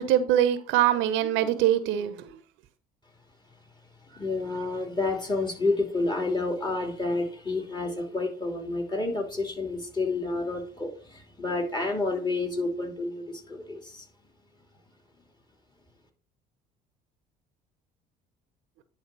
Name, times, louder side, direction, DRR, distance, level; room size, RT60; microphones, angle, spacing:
voice 1, 0.0-2.3, right 11 dB, 70° right, 0.8 m, -23 dB
voice 2, 4.1-14.1, left 3 dB, 20° left, 2.7 m, -29 dB
10.5 x 3.5 x 5.4 m
hypercardioid pair, 65°, 21 cm